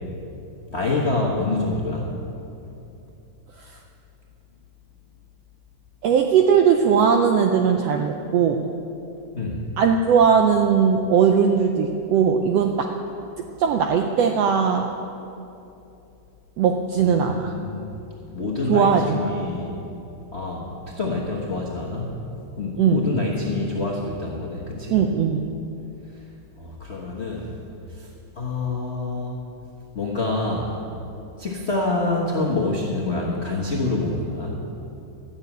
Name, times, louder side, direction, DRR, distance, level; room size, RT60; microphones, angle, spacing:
voice 1, 0.7-2.1 9.3-9.6 17.0-17.9 18.3-19.8 20.3-20.6 21.0-22.1 22.6-25.0 26.6-27.5 28.0-28.1 28.3-29.4 29.9-30.7 31.4-34.5, left 2 dB, 45° left, -4 dB, 0.8 m, -26 dB
voice 2, 6.0-8.6 9.8-12.9 13.4-14.9 16.6-17.5 18.7-19.3 22.8-23.1 24.9-25.4, right 7 dB, 80° right, 4 dB, 1.4 m, -19 dB
13.5 x 7.3 x 9.2 m, 2.8 s
omnidirectional pair, 3.5 m